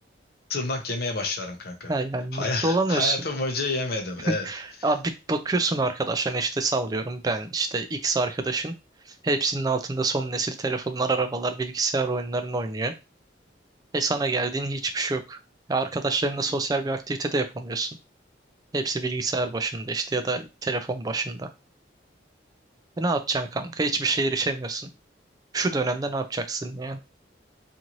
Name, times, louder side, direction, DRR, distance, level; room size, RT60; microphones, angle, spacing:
voice 1, 0.5-1.9 2.3-4.5, left 3 dB, 55° left, 3 dB, 0.7 m, -29 dB
voice 2, 1.9-3.2 4.3-8.7 9.1-12.9 13.9-15.4 15.7-17.9 18.7-21.5 23.0-24.9 25.5-27.0, right 3 dB, 20° right, 7 dB, 0.3 m, -27 dB
2.7 x 2.5 x 2.9 m, 0.27 s
head